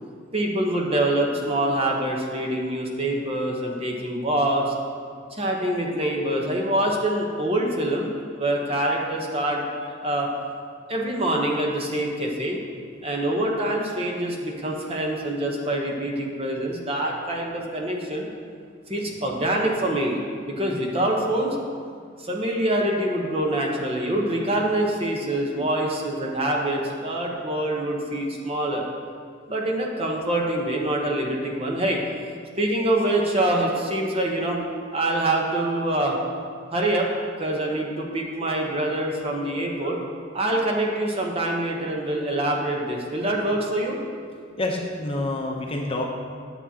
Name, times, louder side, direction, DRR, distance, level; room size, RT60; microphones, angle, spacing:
voice 1, 0.3-4.7 5.3-9.6 10.0-10.3 10.9-12.6 13.0-18.3 18.9-21.6 22.2-28.8 29.5-32.0 32.6-34.6 34.9-36.1 36.7-37.1 37.4-40.0 40.3-44.0, right 1 dB, 30° right, 0 dB, 0.9 m, -25 dB
voice 2, 44.6-46.1, left 2 dB, 30° left, 0 dB, 0.7 m, -28 dB
9.9 x 7.3 x 2.8 m, 2.2 s
head